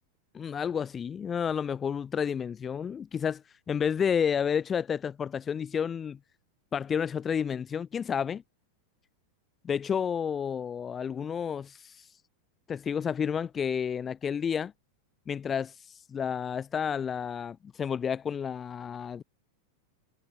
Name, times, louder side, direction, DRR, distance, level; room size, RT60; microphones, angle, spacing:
voice 1, 0.3-3.4 3.7-6.2 6.7-8.4 9.6-12.1 12.7-14.7 15.3-19.2, left 7 dB, 20° left, 0.6 m, -30 dB
figure-of-eight pair, 90°, 0 cm